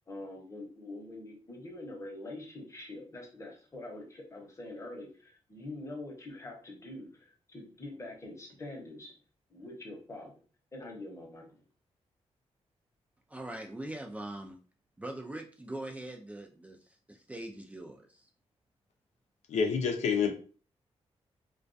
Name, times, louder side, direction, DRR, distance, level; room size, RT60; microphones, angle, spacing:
voice 1, 0.1-9.1 9.5-10.3 10.7-11.5, left 2 dB, 25° left, 0 dB, 0.8 m, -44 dB
voice 2, 13.3-14.6 15.0-18.3, right 1 dB, 10° right, 2 dB, 0.3 m, -42 dB
voice 3, 19.5-20.3, left 6 dB, 85° left, 4 dB, 0.5 m, -28 dB
2.3 x 2.2 x 2.5 m, 0.39 s
cardioid pair, 110°, 11 cm